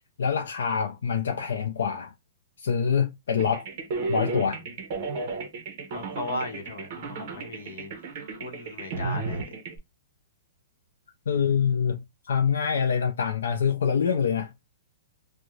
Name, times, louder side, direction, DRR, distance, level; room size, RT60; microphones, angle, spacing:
voice 1, 0.2-2.1 2.6-3.7 4.1-4.6 11.3-14.5, left 7 dB, 85° left, 0.4 m, -25 dB
sound 1, 3.4-9.8, right 3 dB, 30° right, 0.6 m, -33 dB
voice 2, 5.9-7.9 8.4-9.4 11.3-11.6, left 2 dB, 65° left, 0.8 m, -37 dB
2.4 x 2.0 x 3.0 m
hypercardioid pair, 180°, 0 cm